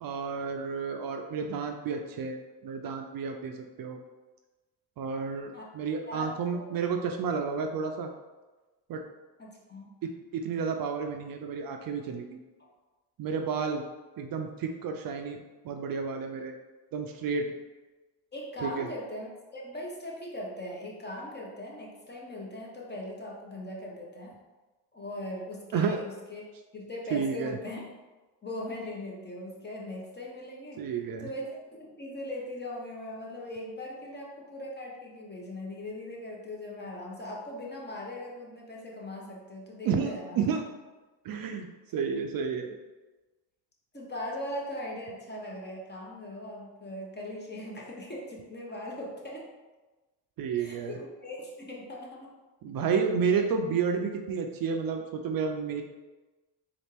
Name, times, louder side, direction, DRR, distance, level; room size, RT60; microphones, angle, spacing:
voice 1, 0.0-4.0 5.0-8.1 8.9-9.0 10.0-12.4 13.2-13.8 14.2-15.4 15.6-16.5 16.9-17.5 18.6-18.9 25.7-26.0 27.1-27.6 30.8-31.3 39.8-40.6 41.2-42.8 50.4-51.0 52.6-55.8, right 5 dB, 55° right, 5 dB, 0.5 m, -31 dB
voice 2, 6.1-6.7 9.4-9.9 18.3-24.3 24.9-26.4 26.7-27.8 28.4-30.9 31.2-40.4 43.9-49.5 50.6-52.4, left 1 dB, 25° left, -2 dB, 1.1 m, -40 dB
4.0 x 2.5 x 3.4 m, 1.2 s
supercardioid pair, 65°, 42 cm